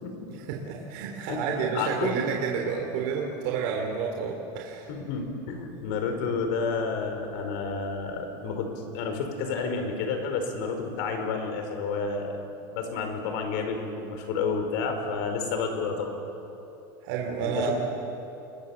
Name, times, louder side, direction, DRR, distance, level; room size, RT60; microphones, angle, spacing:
voice 1, 0.5-4.9 17.0-17.7, right 6 dB, 55° right, 0 dB, 3.4 m, -30 dB
voice 2, 1.3-2.1 4.9-12.4 12.7-16.2 17.4-17.7, left 5 dB, 60° left, 5 dB, 5.0 m, -30 dB
28.0 x 22.5 x 7.4 m, 2.9 s
supercardioid pair, 160°, 11 cm